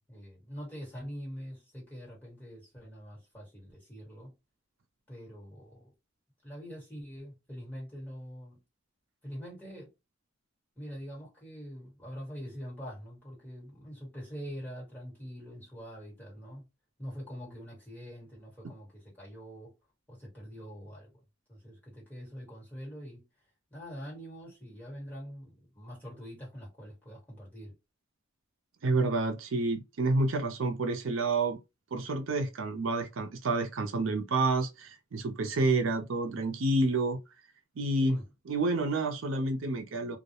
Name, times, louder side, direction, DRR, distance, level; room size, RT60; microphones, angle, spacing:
voice 1, 0.0-4.3 5.1-5.9 6.4-8.6 9.2-9.9 10.8-16.6 17.0-19.7 20.1-21.1 21.5-23.2 23.7-27.7 38.0-38.2, equal, 10° left, 1.3 m, -44 dB
voice 2, 28.8-31.6 31.9-37.2 37.8-38.2 38.5-40.2, right 2 dB, 75° right, 0.5 m, -29 dB
2.2 x 2.0 x 2.8 m
head